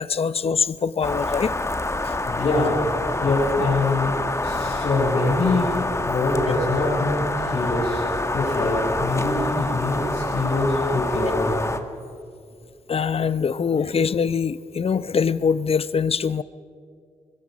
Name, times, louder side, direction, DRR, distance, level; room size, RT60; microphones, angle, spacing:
voice 1, 0.0-1.5 2.0-2.1 12.9-16.4, left 6 dB, 50° left, 16 dB, 0.7 m, -23 dB
sound 1, 1.0-11.8, left 2 dB, 20° left, 1.6 m, -27 dB
voice 2, 2.2-2.9 3.2-4.1 4.4-5.7 6.0-11.6 13.5-14.0, left 2 dB, 80° left, -8 dB, 7.0 m, -24 dB
25.5 x 21.5 x 5.3 m, 2.3 s
cardioid pair, 60°, 13 cm